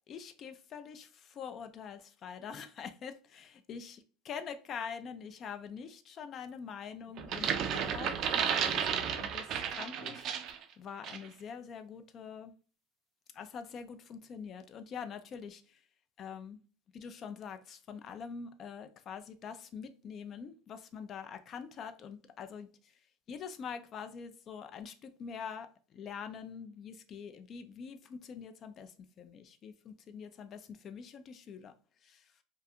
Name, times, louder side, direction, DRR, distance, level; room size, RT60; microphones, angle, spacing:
voice 1, 0.1-3.9 4.3-10.3 10.8-12.5 13.3-15.6 16.2-16.6 16.9-22.7 23.3-31.7 32.0-32.2, left 6 dB, 35° left, 0.3 m, -45 dB
sound 1, 7.2-10.6 11.0-11.3, right 8 dB, 45° right, 0.3 m, -33 dB
2.4 x 2.3 x 2.7 m
supercardioid pair, 125°, 0 cm